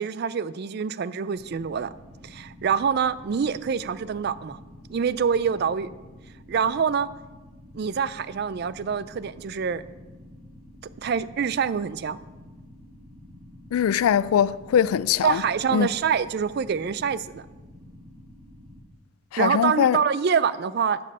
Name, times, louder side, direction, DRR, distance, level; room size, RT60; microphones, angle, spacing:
voice 1, 0.0-1.9 2.2-4.6 4.9-5.9 6.5-7.1 7.7-9.8 11.0-12.2 15.2-17.4 19.4-21.0, right 6 dB, 50° right, 0.3 m, -25 dB
sound 1, 1.3-18.8, left 1 dB, 5° left, 2.6 m, -48 dB
voice 2, 13.7-15.4 15.7-15.9 19.3-20.0, left 8 dB, 85° left, 0.3 m, -21 dB
11.5 x 5.3 x 5.5 m
head